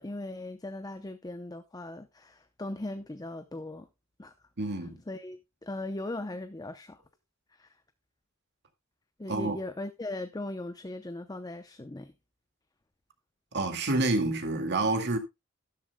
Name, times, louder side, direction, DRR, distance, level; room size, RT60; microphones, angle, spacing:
voice 1, 0.0-3.9 4.2-4.3 4.8-7.0 7.5-7.8 9.2-12.1, left 2 dB, 20° left, 0.6 m, -39 dB
voice 2, 4.6-5.0 9.3-9.6 13.5-15.2, right 2 dB, 55° right, 2.0 m, -28 dB
12.5 x 11.5 x 2.2 m
head